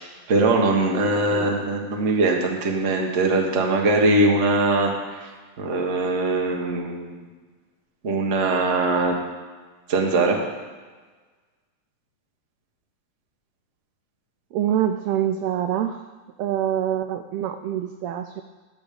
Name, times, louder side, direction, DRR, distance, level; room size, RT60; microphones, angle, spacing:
voice 1, 0.3-5.3 5.6-7.2 8.0-9.2 9.9-10.4, right 2 dB, 45° right, 0 dB, 0.9 m, -21 dB
voice 2, 14.5-16.0 16.4-18.4, right 10 dB, 80° right, 8 dB, 1.5 m, -25 dB
12.0 x 5.2 x 8.5 m, 1.4 s
omnidirectional pair, 3.5 m